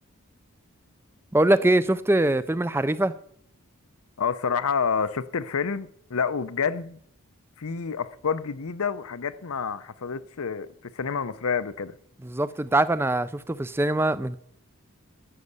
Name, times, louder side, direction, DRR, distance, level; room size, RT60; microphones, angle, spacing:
voice 1, 1.3-3.1 12.2-14.4, right 1 dB, 10° right, 0.4 m, -23 dB
voice 2, 4.2-7.0 7.6-10.7 10.9-11.9, left 6 dB, 75° left, 0.6 m, -28 dB
12.5 x 6.5 x 8.1 m
head